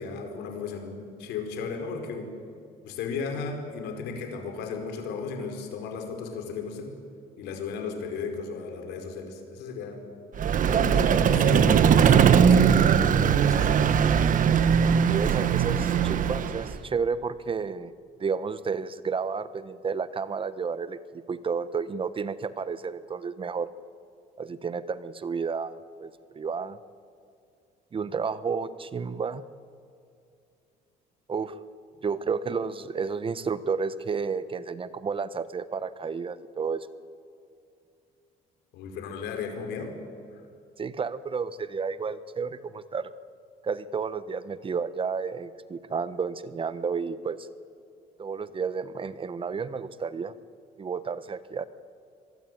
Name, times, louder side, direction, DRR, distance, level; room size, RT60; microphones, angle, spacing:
voice 1, 0.0-2.3 2.8-7.0 7.4-10.0 10.6-12.9 13.3-14.0 38.7-39.9 40.3-40.4, left 5 dB, 85° left, 5 dB, 5.1 m, -35 dB
Vehicle, 10.4-16.8, right 7 dB, 50° right, 1.4 m, -20 dB
voice 2, 15.0-17.9 18.2-23.7 24.4-26.8 27.9-29.4 31.3-31.5 32.0-36.9 40.8-43.1 43.6-47.5 48.2-50.3 50.8-51.7, right 5 dB, 30° right, 14 dB, 1.0 m, -31 dB
26.0 x 22.0 x 9.4 m, 2.4 s
cardioid pair, 110°, 17 cm